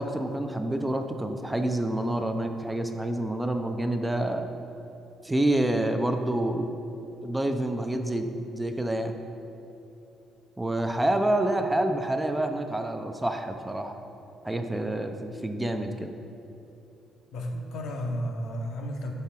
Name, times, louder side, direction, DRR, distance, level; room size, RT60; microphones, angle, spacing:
voice 1, 0.0-4.5 5.2-6.7 7.2-9.1 10.6-13.9 14.4-16.1, right 1 dB, 10° right, 5 dB, 0.5 m, -28 dB
voice 2, 17.3-19.1, equal, 60° left, 2 dB, 0.6 m, -33 dB
5.5 x 3.6 x 5.7 m, 2.8 s
figure-of-eight pair, 45°, 0 cm